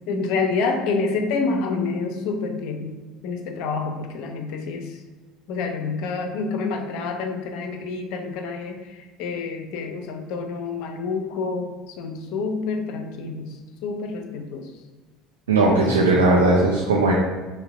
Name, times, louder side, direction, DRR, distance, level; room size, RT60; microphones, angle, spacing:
voice 1, 0.1-3.0 3.2-5.0 5.5-13.6 13.8-14.7, left 4 dB, 55° left, 5 dB, 0.4 m, -28 dB
voice 2, 15.5-17.1, right 2 dB, 75° right, -3 dB, 0.4 m, -18 dB
5.4 x 2.0 x 2.6 m, 1.3 s
figure-of-eight pair, 65°, 0 cm